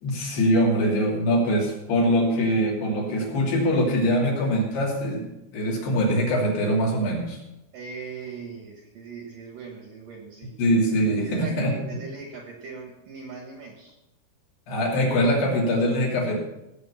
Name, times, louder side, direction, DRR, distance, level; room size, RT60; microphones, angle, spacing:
voice 1, 0.0-7.4 10.6-11.8 14.7-16.4, equal, 60° left, -2 dB, 4.6 m, -23 dB
voice 2, 7.7-10.6 11.2-14.0, right 5 dB, 60° right, 1 dB, 2.5 m, -39 dB
17.0 x 7.8 x 5.7 m, 0.92 s
omnidirectional pair, 5.5 m